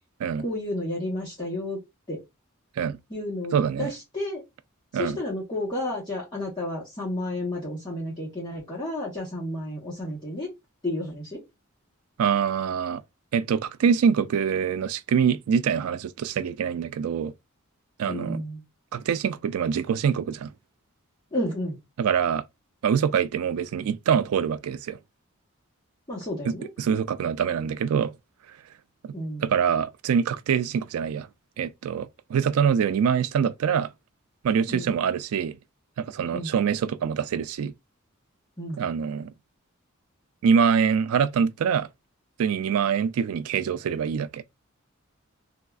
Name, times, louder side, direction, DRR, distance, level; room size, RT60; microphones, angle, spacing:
voice 1, 0.4-1.8 2.1-2.2 3.1-4.4 4.9-10.5 10.8-11.4 18.1-18.6 21.3-21.8 26.1-26.7 29.1-29.5 34.7-34.9 36.3-36.5 38.6-38.8, left 1 dB, 20° left, 1.0 m, -31 dB
voice 2, 3.5-3.9 4.9-5.2 12.2-13.0 13.3-17.3 18.0-18.4 18.9-20.5 22.0-22.4 22.8-25.0 26.5-28.1 29.0-29.1 29.4-31.3 31.6-33.9 34.4-35.6 36.0-37.7 38.8-39.3 40.4-41.9 42.4-44.4, right 7 dB, 85° right, 0.3 m, -24 dB
3.4 x 2.3 x 2.3 m
head